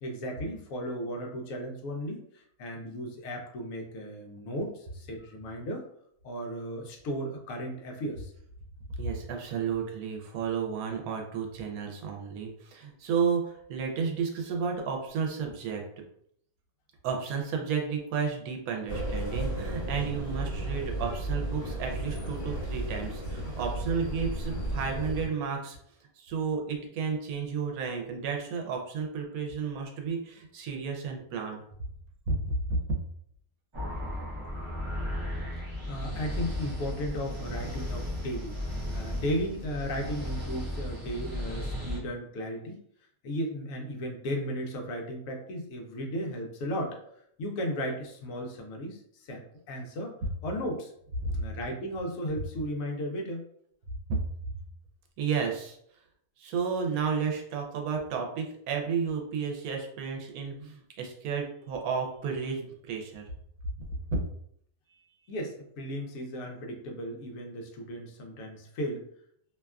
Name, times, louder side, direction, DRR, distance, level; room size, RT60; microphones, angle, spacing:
voice 1, 0.0-5.8 6.2-8.3 35.5-42.8 43.2-47.0 47.4-50.1 50.4-50.9 51.3-53.4 65.3-69.1, equal, 70° left, 1 dB, 0.9 m, -35 dB
voice 2, 9.0-15.8 17.0-25.8 26.2-31.6 32.3-33.0 51.2-51.4 54.1-54.2 55.2-55.8 56.4-63.3 64.1-64.2, right 5 dB, 85° right, 2 dB, 1.1 m, -32 dB
sound 1, 18.9-25.3, right 1 dB, 45° left, 1.3 m, -33 dB
sound 2, 33.7-42.0, left 1 dB, 45° right, 0.4 m, -35 dB
2.8 x 2.2 x 2.3 m, 0.68 s
omnidirectional pair, 1.5 m